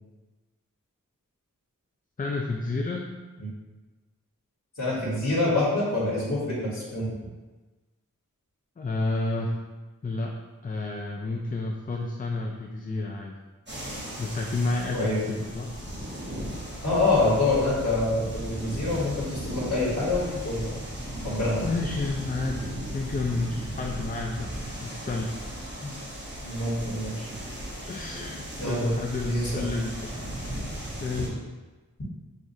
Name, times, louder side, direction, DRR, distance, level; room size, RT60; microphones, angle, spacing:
voice 1, 2.2-3.1 8.8-9.6 10.0-10.3 10.6-13.3 14.2-15.7 21.6-24.5 24.8-25.3 27.9-30.1 31.0-31.4, left 3 dB, 25° left, 1 dB, 0.4 m, -30 dB
voice 2, 4.8-7.1 14.9-15.3 16.8-20.8 21.2-21.6 25.8-25.9 26.4-27.3 28.6-28.9 29.2-29.6, left 2 dB, 60° left, -8 dB, 1.3 m, -26 dB
sound 1, 13.7-31.3, right 1 dB, 35° right, 1.2 m, -36 dB
6.2 x 2.4 x 2.7 m, 1.2 s
wide cardioid pair, 50°, 33 cm